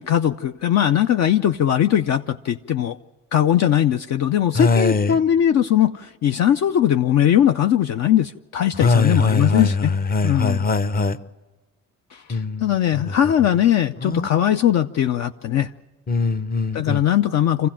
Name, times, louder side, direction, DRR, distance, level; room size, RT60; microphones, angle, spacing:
voice 1, 0.0-3.0 3.3-9.9 10.2-10.6 12.1-15.7 16.7-17.7, left 10 dB, 60° left, 8 dB, 0.6 m, -20 dB
voice 2, 4.5-5.1 8.8-11.2 12.3-12.6 14.0-14.3 16.1-17.0, left 3 dB, 30° left, 13 dB, 0.8 m, -21 dB
25.0 x 15.5 x 7.5 m, 1.2 s
cardioid pair, 85°, 31 cm